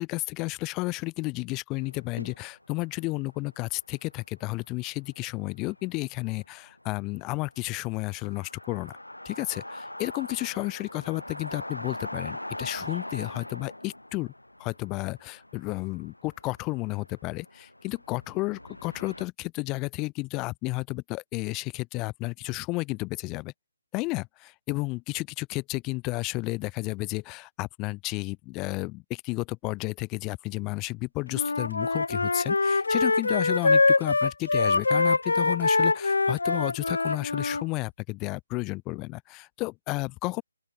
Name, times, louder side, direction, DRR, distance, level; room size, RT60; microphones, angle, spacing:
voice 1, 0.0-8.9 9.2-14.3 14.6-23.5 23.9-40.4, left 23 dB, 15° left, 0.8 m, -32 dB
sound 1, 1.8-19.2, left 1 dB, 80° left, 6.0 m, -42 dB
Wind instrument woodwind instrument, 31.3-37.6, left 3 dB, 60° left, 0.3 m, -24 dB
open air
figure-of-eight pair, 145°, 0 cm